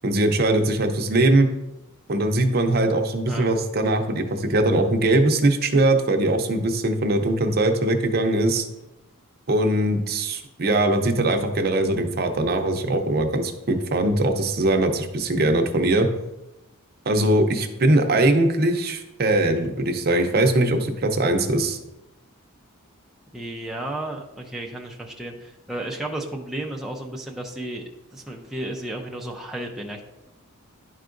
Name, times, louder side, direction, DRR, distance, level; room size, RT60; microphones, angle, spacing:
voice 1, 0.0-1.5 2.1-8.7 9.5-16.1 17.1-21.8, right 1 dB, 45° right, 5 dB, 0.7 m, -21 dB
voice 2, 23.3-27.8 28.1-30.0, right 1 dB, ahead, -1 dB, 0.5 m, -33 dB
11.0 x 4.6 x 2.6 m, 0.95 s
head